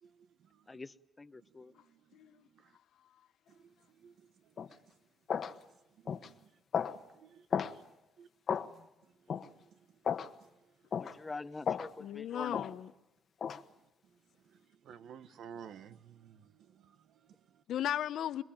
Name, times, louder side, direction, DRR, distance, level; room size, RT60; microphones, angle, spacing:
voice 1, 0.0-0.8 1.3-2.8 3.5-4.8 6.0-6.5 6.9-7.8 8.2-8.3 14.5-17.6, right 8 dB, 70° right, 1.3 m, -55 dB
voice 2, 0.7-1.7 11.0-12.6, left 3 dB, 20° left, 1.0 m, -45 dB
sound 1, 4.6-4.7 5.3-5.5 6.1-6.3 6.7-7.0 7.5-7.7 8.5-8.7 9.3-9.5 10.0-10.3 10.9-11.1 11.7-11.9 12.5-12.7 13.4-13.6, left 7 dB, 55° left, 1.4 m, -34 dB
voice 3, 12.0-12.9 17.7-18.4, left 11 dB, 75° left, 1.0 m, -36 dB
27.0 x 22.0 x 9.0 m
cardioid pair, 90°, 0 cm